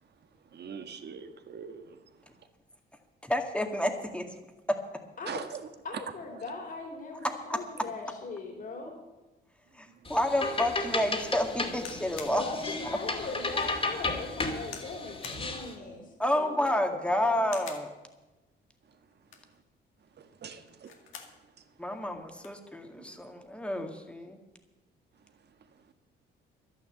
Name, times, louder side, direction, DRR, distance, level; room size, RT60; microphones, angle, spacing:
voice 1, 0.5-2.0 5.3-5.7 5.9-6.0 20.2-20.9 23.0-23.2, right 7 dB, 55° right, 8 dB, 1.5 m, -42 dB
voice 2, 3.2-4.3 4.7-4.8 7.5-7.6 9.7-12.4 16.2-17.9 21.8-24.4, left 1 dB, 5° left, 4 dB, 2.0 m, -29 dB
voice 3, 5.8-8.9 12.4-17.4, left 3 dB, 50° left, 1 dB, 3.2 m, -40 dB
sound 1, 10.1-15.7, left 3 dB, 30° left, 2.5 m, -34 dB
sound 2, 11.8-12.4 13.0-13.1 13.6-13.7 14.6-14.9 15.2-15.5 16.5-16.9 17.4-17.9 19.1-19.6 20.7-21.4 21.8-21.9 22.1-22.6 23.5-23.7, left 7 dB, 85° left, 2.0 m, -46 dB
11.5 x 10.5 x 7.9 m, 1.1 s
cardioid pair, 90°, 20 cm